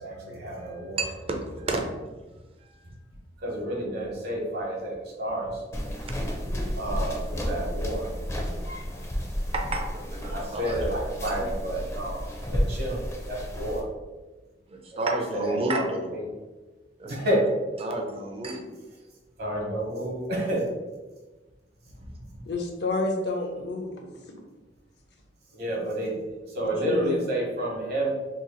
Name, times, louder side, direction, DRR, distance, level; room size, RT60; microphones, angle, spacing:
voice 1, 0.0-1.1 2.6-2.7 3.4-5.6 6.7-8.1 10.3-13.9 14.9-15.8 16.1-16.3 17.0-17.4 19.4-20.7 22.0-22.4 25.5-28.1, right 1 dB, 65° right, -2 dB, 1.1 m, -30 dB
voice 2, 1.0-1.4 1.7-1.8 6.0-6.1 6.4-6.6 8.6-8.9 9.5-10.8 11.3-11.4 14.7-16.2 17.0-17.4 17.8-18.7, right 2 dB, 35° right, 2 dB, 0.5 m, -31 dB
sound 1, 5.7-13.8, equal, 15° left, 0.5 m, -32 dB
voice 3, 22.5-24.4 26.6-27.3, left 3 dB, 70° left, 2 dB, 0.7 m, -30 dB
2.8 x 2.4 x 3.9 m, 1.2 s
head